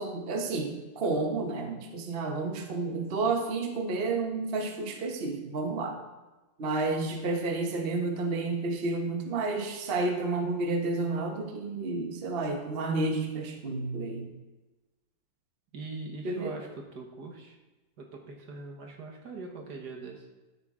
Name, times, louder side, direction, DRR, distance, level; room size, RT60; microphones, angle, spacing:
voice 1, 0.0-6.0 6.6-14.3 16.2-16.6, right 3 dB, 40° right, 3 dB, 1.0 m, -31 dB
voice 2, 15.7-17.6 18.0-20.3, right 3 dB, 60° right, 2 dB, 1.7 m, -42 dB
12.0 x 6.7 x 3.6 m, 1.1 s
omnidirectional pair, 2.0 m